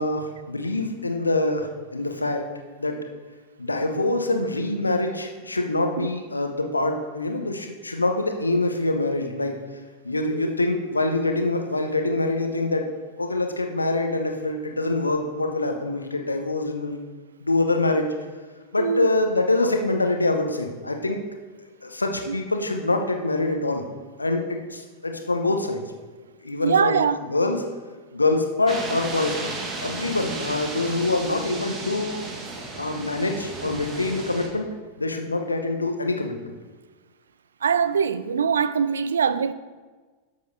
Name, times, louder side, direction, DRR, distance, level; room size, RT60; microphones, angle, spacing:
voice 1, 0.0-2.5 2.8-3.0 3.6-9.6 10.0-12.9 13.2-17.0 17.4-18.1 18.7-21.2 21.8-23.8 24.2-25.8 26.4-27.6 28.1-32.3 32.8-34.7 35.0-36.5, left 2 dB, 80° left, 0.8 m, -25 dB
voice 2, 18.8-19.1 22.3-22.4 26.6-27.2 37.6-39.5, right 7 dB, 70° right, 0.3 m, -22 dB
sound 1, 28.7-34.5, right 3 dB, 25° right, 1.4 m, -34 dB
12.5 x 6.8 x 2.7 m
figure-of-eight pair, 90°, 0 cm